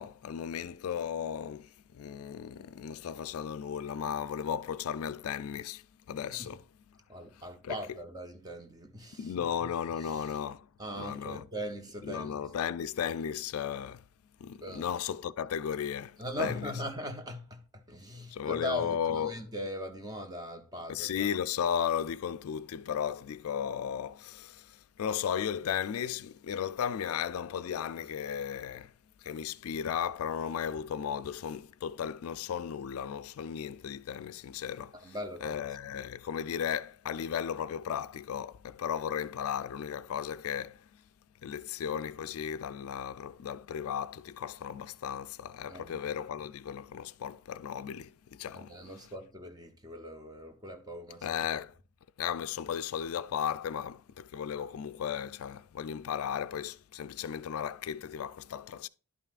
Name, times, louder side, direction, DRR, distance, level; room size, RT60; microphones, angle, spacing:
voice 1, 0.0-6.6 7.6-7.8 9.2-10.7 11.0-11.4 12.0-14.0 14.4-16.7 18.3-19.3 20.9-28.9 29.2-35.0 35.4-40.9 41.4-48.8 51.2-51.7 52.2-58.9, left 8 dB, 75° left, 0.3 m, -35 dB
voice 2, 7.1-9.7 10.0-10.4 10.8-12.4 14.5-14.9 16.2-21.3 35.0-35.6 45.7-46.0 48.5-51.4, equal, 15° right, 0.7 m, -40 dB
11.0 x 5.6 x 2.5 m
head